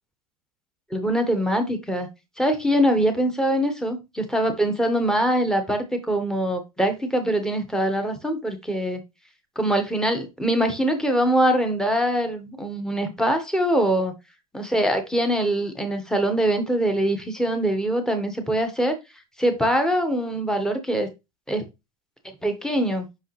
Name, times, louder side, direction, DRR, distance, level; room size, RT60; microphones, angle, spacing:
voice 1, 0.9-2.1 2.4-9.0 9.5-14.1 14.5-18.9 19.4-21.1 21.5-21.6 22.4-23.1, right 1 dB, 5° left, 1.6 m, -23 dB
5.8 x 5.5 x 3.3 m
hypercardioid pair, 95°, 20 cm